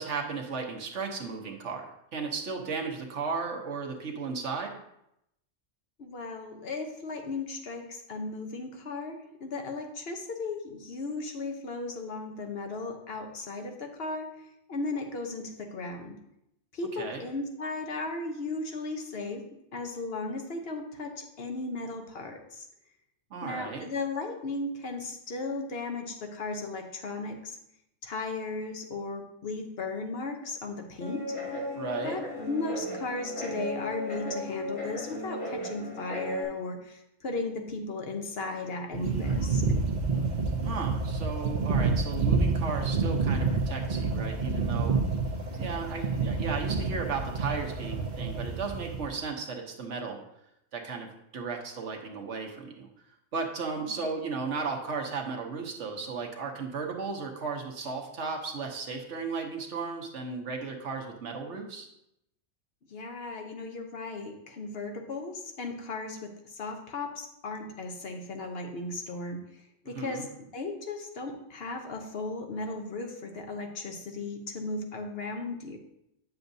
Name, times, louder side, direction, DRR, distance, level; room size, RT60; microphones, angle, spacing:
voice 1, 0.0-4.7 17.0-17.2 23.3-23.9 31.7-32.2 40.6-45.0 45.6-50.2 50.7-51.1 51.3-52.9 53.3-61.9 69.8-70.3, right 4 dB, 65° right, 2 dB, 1.2 m, -35 dB
voice 2, 6.0-14.3 14.7-16.2 16.7-19.4 19.7-22.7 23.4-27.6 28.0-31.2 32.0-39.6 53.8-54.0 62.9-69.5 69.8-75.8, left 3 dB, 55° left, 4 dB, 1.0 m, -36 dB
Guitar, 31.0-36.4, left 1 dB, 90° left, 2.7 m, -35 dB
sound 1, 38.9-49.1, right 4 dB, 40° right, 0.8 m, -28 dB
9.0 x 7.0 x 2.7 m, 0.81 s
omnidirectional pair, 1.3 m